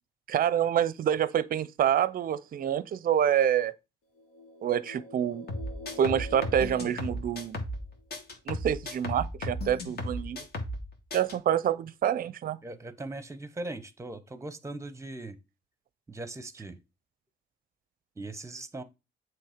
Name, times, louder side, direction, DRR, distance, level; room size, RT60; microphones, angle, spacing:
voice 1, 0.3-3.8 4.6-5.5 6.0-7.6 8.5-10.4 11.1-12.6, right 9 dB, 45° right, 0.5 m, -27 dB
sound 1, 4.1-8.0, left 2 dB, 90° left, 1.3 m, -46 dB
sound 2, 5.5-7.8 8.1-10.8 11.1-11.3, left 1 dB, 55° left, 1.9 m, -35 dB
voice 2, 12.6-15.4 16.1-16.8 18.2-18.8, right 2 dB, 15° right, 0.8 m, -39 dB
7.6 x 3.1 x 5.0 m
cardioid pair, 90°, 20 cm